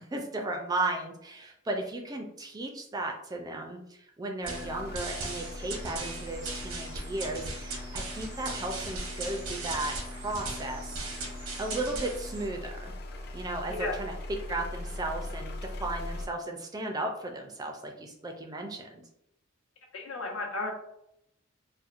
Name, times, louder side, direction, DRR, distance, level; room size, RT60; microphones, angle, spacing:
voice 1, 0.0-11.0 11.6-12.9 13.3-14.1 14.5-19.0, right 2 dB, 20° right, 2 dB, 0.4 m, -35 dB
sound 1, 4.4-16.3, left 1 dB, 50° left, 0.5 m, -41 dB
sound 2, 4.5-12.5, right 3 dB, 85° right, 0.8 m, -39 dB
voice 2, 19.9-20.7, left 2 dB, 75° left, 0 dB, 0.8 m, -33 dB
4.1 x 2.1 x 2.4 m, 0.78 s
head